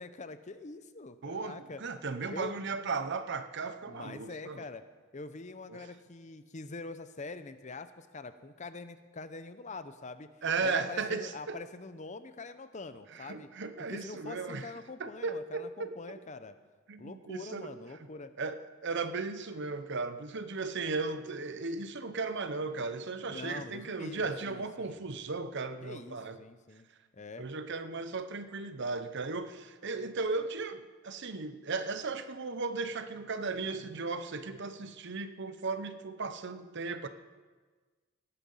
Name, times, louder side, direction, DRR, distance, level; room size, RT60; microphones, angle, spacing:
voice 1, 0.0-1.8 2.3-2.6 3.9-4.8 5.1-10.3 10.6-13.5 13.9-16.6 17.0-18.3 23.3-25.0 25.8-26.9 27.1-27.5, left 3 dB, 35° left, 11 dB, 0.7 m, -44 dB
voice 2, 1.2-4.6 5.7-5.9 10.4-11.6 13.1-14.7 15.0-16.2 16.9-17.7 18.4-26.4 27.4-37.1, right 4 dB, 55° right, 11 dB, 0.8 m, -36 dB
18.5 x 10.0 x 5.6 m, 1.4 s
head